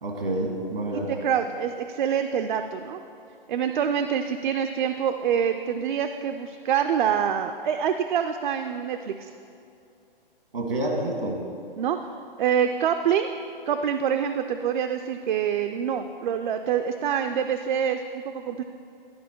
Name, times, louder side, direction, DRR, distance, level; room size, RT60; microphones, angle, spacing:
voice 1, 0.0-1.2 10.5-11.4, right 1 dB, 85° right, 1 dB, 1.6 m, -28 dB
voice 2, 1.2-3.0 3.5-9.3 11.8-12.1 12.4-13.3 13.7-18.6, right 8 dB, 55° right, 6 dB, 0.4 m, -26 dB
12.0 x 4.4 x 4.4 m, 2.6 s
figure-of-eight pair, 125°, 29 cm